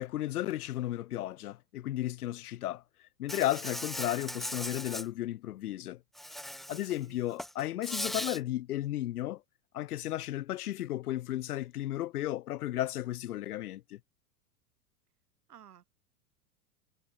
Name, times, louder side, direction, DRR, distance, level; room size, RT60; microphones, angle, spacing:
voice 1, 0.0-2.8 3.2-6.0 6.7-9.4 9.7-14.0, left 14 dB, 75° left, 0.9 m, -34 dB
Insect, 3.3-5.0 6.2-7.0 7.3-8.4, equal, ahead, 0.3 m, -38 dB
voice 2, 6.7-7.3 15.5-15.9, right 9 dB, 80° right, 7.6 m, -55 dB
hypercardioid pair, 105°, 45 cm